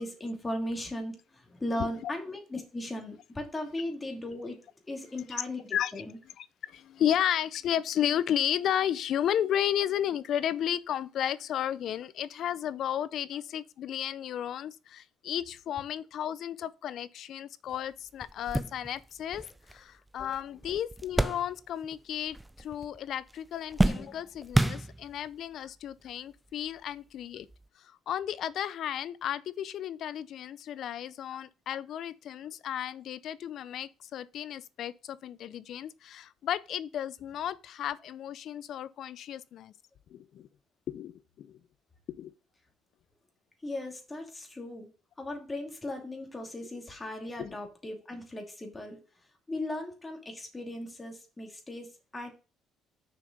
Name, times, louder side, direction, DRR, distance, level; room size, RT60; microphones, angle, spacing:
voice 1, 0.0-4.6 4.9-6.2 43.6-44.9 45.2-49.0 49.5-52.3, left 1 dB, 15° left, 2.5 m, -37 dB
voice 2, 1.8-2.1 5.7-5.9 6.4-19.4 19.7-27.5 27.8-39.7 40.1-40.5 40.9-41.6 42.2-42.3 47.4-47.5, left 10 dB, 60° left, 0.5 m, -33 dB
sound 1, 17.7-17.8 18.2-22.0 22.3-23.0 23.3-25.3 26.1-26.2 27.5-27.6, right 1 dB, 5° right, 0.4 m, -30 dB
6.6 x 5.8 x 5.2 m
cardioid pair, 105°, 0 cm